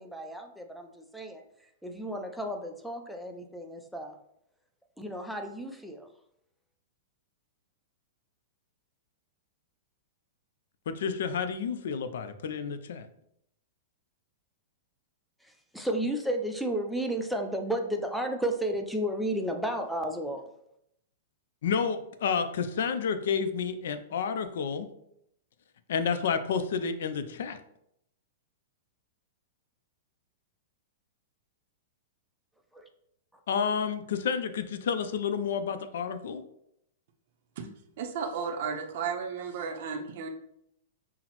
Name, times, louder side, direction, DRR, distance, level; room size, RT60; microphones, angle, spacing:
voice 1, 0.0-4.2 5.0-6.1 15.4-20.4 32.7-32.9 33.3-33.4, right 1 dB, ahead, 3 dB, 0.4 m, -33 dB
voice 2, 10.9-13.1 21.6-24.9 25.9-27.6 33.5-36.4, left 6 dB, 75° left, 10 dB, 0.4 m, -30 dB
voice 3, 38.0-40.3, right 6 dB, 60° right, 3 dB, 0.6 m, -34 dB
5.6 x 2.0 x 3.0 m, 0.76 s
hypercardioid pair, 145°, 0 cm